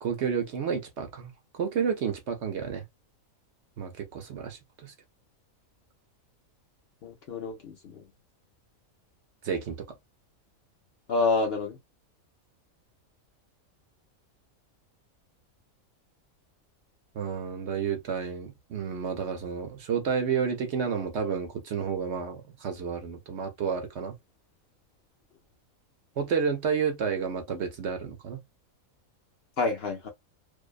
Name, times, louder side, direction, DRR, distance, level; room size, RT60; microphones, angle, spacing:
voice 1, 0.0-2.8 3.8-4.9 9.4-9.9 17.1-24.1 26.2-28.4, right 6 dB, 60° right, 0.9 m, -31 dB
voice 2, 7.0-8.1 11.1-11.8 29.6-30.1, left 3 dB, 60° left, 0.7 m, -28 dB
2.6 x 2.0 x 2.3 m
omnidirectional pair, 1.4 m